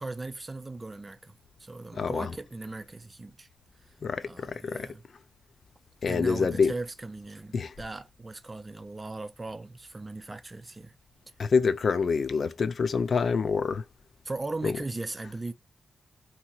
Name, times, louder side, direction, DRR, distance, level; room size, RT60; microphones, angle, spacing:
voice 1, 0.0-3.5 3.8-3.9 4.2-5.0 6.1-10.9 14.2-15.5, right 2 dB, 25° right, 0.5 m, -38 dB
voice 2, 1.9-2.3 4.0-4.9 6.0-6.7 7.5-7.7 11.4-13.8 14.6-14.8, left 5 dB, 55° left, 0.4 m, -26 dB
2.8 x 2.5 x 2.9 m
cardioid pair, 80°, 0 cm